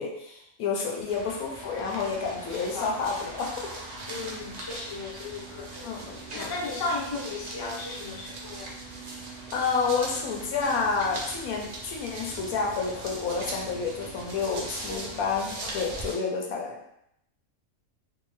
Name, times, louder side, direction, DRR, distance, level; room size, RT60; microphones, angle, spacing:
voice 1, 0.0-3.7 5.8-6.5 9.5-16.8, left 5 dB, 85° left, 0 dB, 1.1 m, -29 dB
sound 1, 1.1-16.1, right 2 dB, 55° right, 0.5 m, -40 dB
voice 2, 2.5-2.9 4.1-8.7 14.9-15.2 15.6-15.8, left 3 dB, 30° left, -4 dB, 0.4 m, -36 dB
3.5 x 2.1 x 3.1 m, 0.79 s
omnidirectional pair, 1.5 m